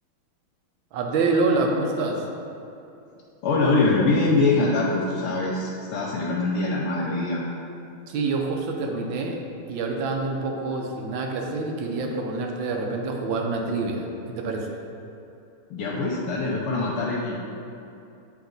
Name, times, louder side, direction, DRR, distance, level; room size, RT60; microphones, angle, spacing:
voice 1, 0.9-2.3 8.1-9.4 9.7-14.7, right 3 dB, 70° right, 1 dB, 1.3 m, -26 dB
voice 2, 3.4-7.4 15.7-17.4, left 3 dB, 85° left, -4 dB, 1.6 m, -23 dB
8.8 x 3.2 x 3.8 m, 2.7 s
omnidirectional pair, 2.4 m